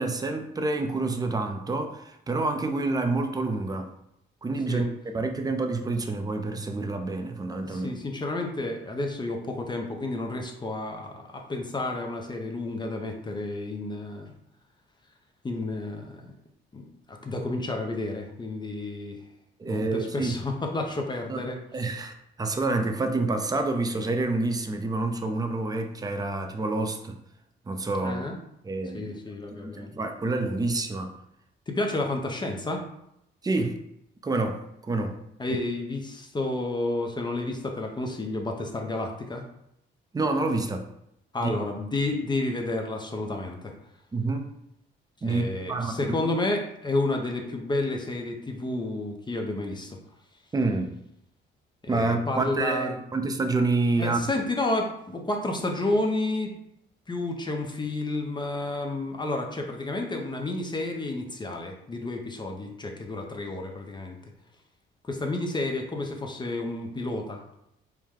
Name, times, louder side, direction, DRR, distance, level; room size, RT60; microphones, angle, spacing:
voice 1, 0.0-3.9 4.4-7.9 19.6-20.4 21.3-21.4 21.7-27.2 27.7-28.3 28.6-29.1 29.5-31.1 33.4-33.7 34.2-35.2 40.1-40.9 41.4-41.5 44.1-44.4 45.2-46.2 50.5-50.9 51.9-54.2, right 3 dB, 20° right, 5 dB, 0.5 m, -28 dB
voice 2, 7.6-14.3 15.4-16.3 16.7-16.8 17.1-19.2 19.7-21.6 28.0-28.3 28.9-30.0 31.7-32.8 35.4-39.4 41.3-43.7 45.3-50.0 51.8-53.0 54.0-56.5 57.1-64.2 65.0-67.4, left 2 dB, 20° left, 2 dB, 0.6 m, -31 dB
4.6 x 2.1 x 3.6 m, 0.78 s
cardioid pair, 90°, 20 cm